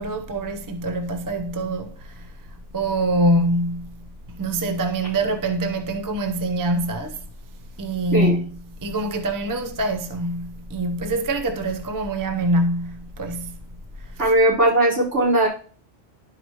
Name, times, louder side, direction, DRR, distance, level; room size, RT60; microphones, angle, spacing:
voice 1, 0.0-2.3 2.7-7.2 7.8-8.5 8.8-13.6 14.0-14.2, right 1 dB, 20° right, 0.6 m, -25 dB
voice 2, 14.2-15.5, right 1 dB, 70° right, 4.4 m, -18 dB
11.5 x 4.9 x 3.0 m
omnidirectional pair, 1.3 m